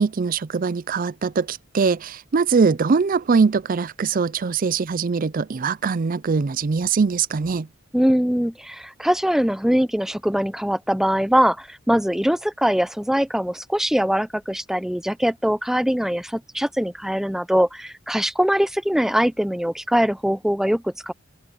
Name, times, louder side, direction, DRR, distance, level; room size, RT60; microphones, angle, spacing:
voice 1, 0.0-7.7, right 5 dB, 45° right, 0.5 m, -22 dB
voice 2, 7.9-21.1, equal, ahead, 0.7 m, -22 dB
head